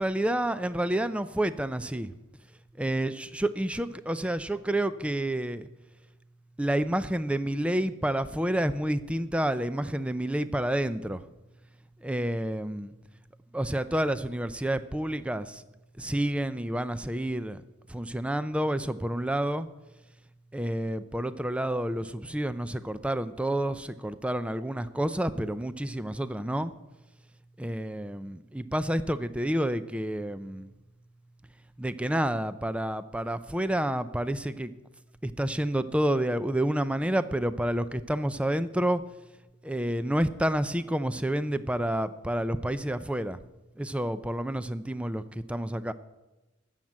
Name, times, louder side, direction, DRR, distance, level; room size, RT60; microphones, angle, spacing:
voice 1, 0.0-2.1 2.8-5.7 6.6-11.3 12.0-12.9 13.5-15.6 16.0-17.6 17.9-19.7 20.5-26.7 27.6-30.7 31.8-34.7 35.2-39.0 39.6-43.4 43.8-45.9, right 1 dB, 5° right, 13 dB, 0.5 m, -29 dB
13.5 x 7.3 x 9.1 m, 1.1 s
head